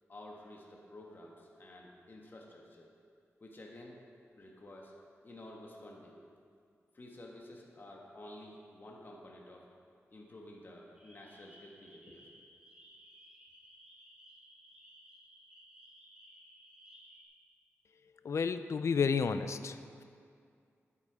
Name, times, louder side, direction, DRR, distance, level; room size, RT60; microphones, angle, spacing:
voice 1, 0.1-2.9 3.4-4.0 4.4-4.9 5.2-6.2 6.9-9.7 10.1-12.3, left 1 dB, 45° left, -2 dB, 1.5 m, -51 dB
sound 1, 10.9-17.2, equal, 15° right, 2.9 m, -58 dB
voice 2, 18.2-20.0, left 5 dB, 70° left, 11 dB, 0.5 m, -31 dB
11.0 x 8.4 x 5.0 m, 2.3 s
wide cardioid pair, 90°, 5 cm